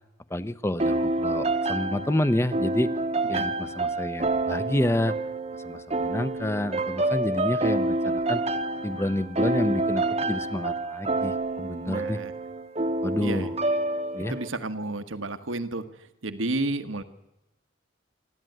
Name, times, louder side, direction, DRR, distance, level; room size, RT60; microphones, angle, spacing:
voice 1, 0.3-2.9 3.3-5.1 5.6-8.4 8.8-12.2 13.0-13.5 14.1-14.4, left 1 dB, 15° left, 13 dB, 0.7 m, -29 dB
sound 1, 0.8-14.5, right 2 dB, 30° right, 1.0 m, -28 dB
voice 2, 11.8-12.3 13.2-13.5 14.3-17.0, right 2 dB, 80° right, 9 dB, 1.4 m, -31 dB
27.0 x 12.5 x 9.3 m, 0.96 s
head